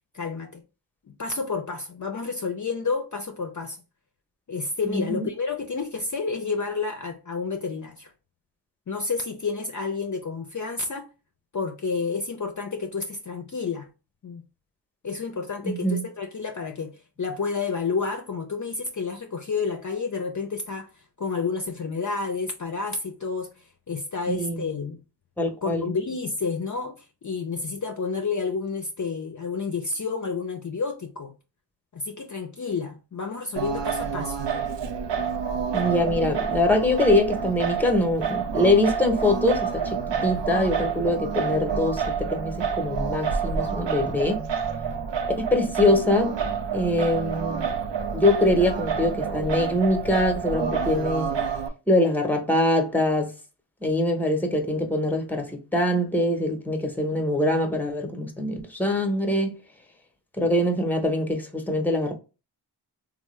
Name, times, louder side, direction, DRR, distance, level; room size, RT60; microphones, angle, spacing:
voice 1, 0.1-0.6 1.1-3.8 4.5-8.1 8.9-11.1 11.5-13.9 14.2-14.4 15.0-25.0 25.6-31.3 31.9-34.4, left 4 dB, 45° left, 0.5 m, -30 dB
voice 2, 4.8-5.3 15.6-16.0 24.3-24.6 25.4-25.9 35.7-42.0 42.3-44.4 45.4-46.3 46.7-47.6 48.1-51.3 51.9-53.3 53.8-59.6 60.4-62.1, left 1 dB, 5° left, 0.8 m, -23 dB
Singing, 33.6-51.7, right 6 dB, 80° right, 0.5 m, -28 dB
3.3 x 2.0 x 3.0 m
wide cardioid pair, 45°, 43 cm